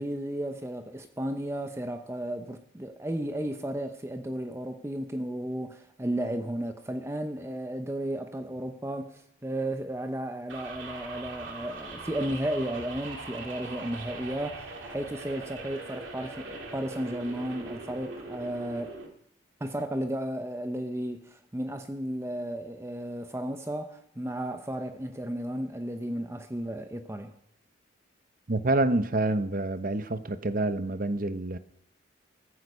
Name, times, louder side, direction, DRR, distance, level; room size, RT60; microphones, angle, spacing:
voice 1, 0.0-19.0 19.6-27.3, right 1 dB, 15° right, 0.7 m, -34 dB
sound 1, 10.5-19.1, right 3 dB, 85° right, 2.4 m, -41 dB
voice 2, 28.5-31.6, right 2 dB, 45° right, 0.8 m, -27 dB
15.0 x 14.5 x 5.4 m
head